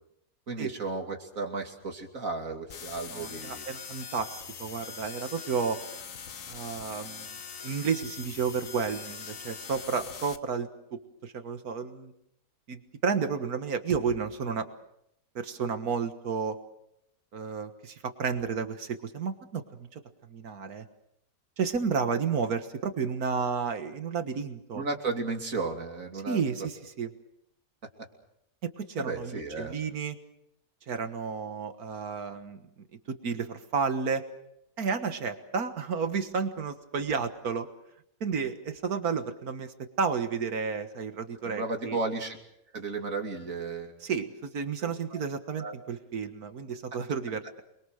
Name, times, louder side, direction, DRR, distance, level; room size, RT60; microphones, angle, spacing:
voice 1, 0.5-3.6 24.7-26.4 29.0-29.8 41.4-42.4 42.7-43.9 44.8-45.2 45.6-45.7, right 3 dB, 65° right, 3 dB, 3.3 m, -34 dB
sound 1, 2.7-10.4, left 6 dB, 65° left, 1.5 m, -42 dB
voice 2, 3.1-5.8 6.5-7.4 7.6-12.1 12.7-14.7 15.4-16.6 17.3-20.0 20.3-20.9 21.6-24.8 26.3-27.1 28.8-30.2 30.9-32.6 33.1-34.2 34.8-37.7 38.2-42.0 44.0-47.6, right 5 dB, 80° right, 8 dB, 1.9 m, -32 dB
28.0 x 22.5 x 6.5 m, 0.79 s
omnidirectional pair, 1.5 m